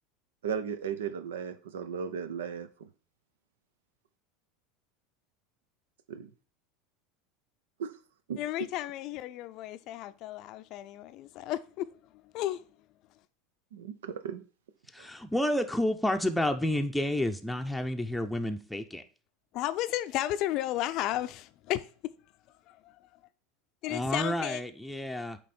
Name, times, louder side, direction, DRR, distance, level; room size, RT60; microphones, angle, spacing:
voice 1, 0.4-2.9 6.1-6.3 7.8-7.9 8.3-8.4 13.7-14.4 15.0-15.1, right 7 dB, 85° right, 0.7 m, -36 dB
voice 2, 8.4-11.8 12.3-12.6 19.5-21.9 22.7-22.8 23.8-24.6, left 14 dB, 55° left, 0.5 m, -33 dB
voice 3, 14.9-19.0 23.9-25.4, left 1 dB, 5° left, 0.6 m, -30 dB
8.3 x 3.0 x 4.3 m
hypercardioid pair, 100°, 0 cm